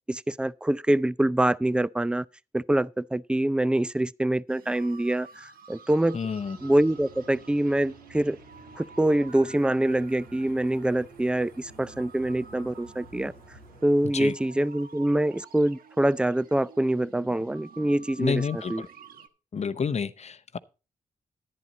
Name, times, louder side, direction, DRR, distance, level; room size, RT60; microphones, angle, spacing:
voice 1, 0.1-2.3 2.5-6.2 6.6-8.4 8.8-13.3 13.8-18.8, right 1 dB, 5° right, 0.4 m, -25 dB
sound 1, 4.5-19.3, right 5 dB, 70° right, 1.1 m, -50 dB
voice 2, 6.1-6.6 14.1-14.3 18.2-18.9 19.5-20.6, left 6 dB, 45° left, 0.8 m, -29 dB
sound 2, 6.4-14.0, right 1 dB, 90° right, 6.7 m, -52 dB
11.0 x 10.0 x 4.0 m
supercardioid pair, 40°, 15 cm